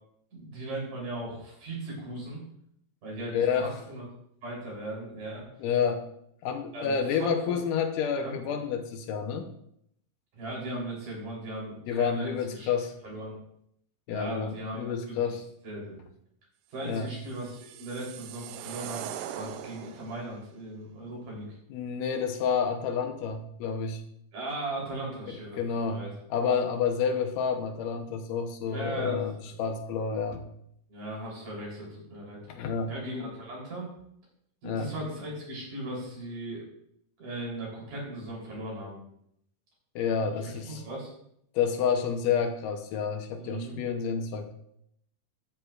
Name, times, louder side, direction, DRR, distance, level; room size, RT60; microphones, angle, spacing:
voice 1, 0.3-2.4 3.0-4.1 4.4-5.5 6.7-7.6 8.1-8.4 10.3-12.7 13.0-13.4 14.1-15.4 15.6-16.0 16.7-21.6 24.3-25.6 25.9-26.1 28.6-29.5 30.9-32.4 32.9-33.9 34.6-36.6 37.2-39.0 40.4-41.1 43.4-43.8, right 1 dB, 70° right, -4 dB, 5.2 m, -38 dB
voice 2, 3.3-3.7 5.6-6.1 6.4-9.5 11.9-12.9 14.1-15.4 16.8-17.1 21.7-24.0 25.6-26.0 26.3-30.4 32.5-32.9 34.6-34.9 40.0-40.8 41.5-44.5, left 6 dB, 75° left, 5 dB, 2.5 m, -29 dB
sound 1, 17.1-20.3, right 11 dB, 90° right, 2.3 m, -41 dB
13.0 x 9.0 x 2.5 m, 0.73 s
omnidirectional pair, 3.9 m